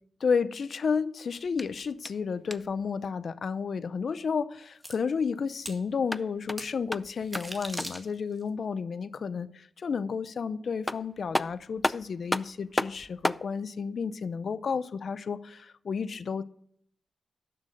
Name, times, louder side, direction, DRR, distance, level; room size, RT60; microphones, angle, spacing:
voice 1, 0.2-16.4, left 5 dB, 65° left, 0.7 m, -31 dB
sound 1, 1.5-2.9 5.9-8.1 10.4-10.5 10.9-13.5, left 1 dB, 15° left, 0.4 m, -33 dB
sound 2, 4.8-4.9 5.6-5.8 6.6-6.7 7.2-8.4, equal, 10° right, 2.0 m, -39 dB
11.5 x 6.2 x 6.5 m
cardioid pair, 65°, 0 cm